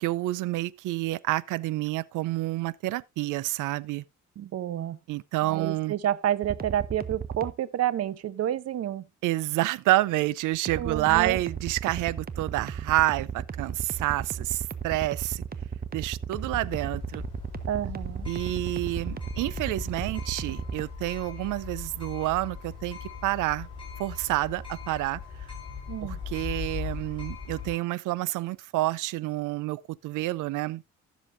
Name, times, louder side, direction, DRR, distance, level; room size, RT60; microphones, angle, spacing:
voice 1, 0.0-4.0 5.1-5.9 9.2-15.4 15.9-17.2 18.3-23.7 24.0-25.2 26.0-30.8, right 17 dB, 90° right, 0.5 m, -28 dB
voice 2, 4.4-5.0 5.4-9.0 10.8-11.4 17.7-18.3 25.9-26.2, right 11 dB, 55° right, 0.8 m, -29 dB
sound 1, 6.4-7.5 10.7-20.8, right 7 dB, 30° right, 1.1 m, -35 dB
sound 2, 16.3-27.8, left 6 dB, 15° left, 7.7 m, -39 dB
15.0 x 7.2 x 2.6 m
cardioid pair, 90°, 30 cm